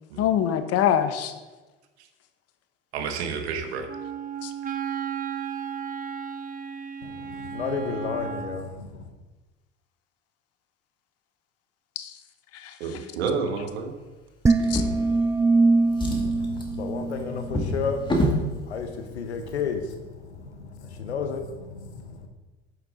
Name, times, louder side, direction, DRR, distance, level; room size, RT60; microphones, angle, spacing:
voice 1, 0.2-1.3 4.4-4.5 11.9-12.1 12.5-13.1 14.7-14.8, left 10 dB, 50° left, 1.1 m, -25 dB
voice 2, 2.9-3.9 12.8-13.9, right 5 dB, 75° right, 1.4 m, -29 dB
Wind instrument woodwind instrument, 3.9-8.7, right 7 dB, 25° right, 0.9 m, -34 dB
voice 3, 7.0-9.1 15.8-22.3, left 5 dB, 85° left, 1.1 m, -33 dB
sound 1, 14.5-17.8, right 3 dB, 10° right, 0.4 m, -23 dB
Drawer open or close, 14.6-15.6 15.9-18.5 19.4-19.5 19.9-20.0, equal, 15° left, 2.3 m, -28 dB
9.2 x 8.7 x 3.8 m
hypercardioid pair, 70°, 32 cm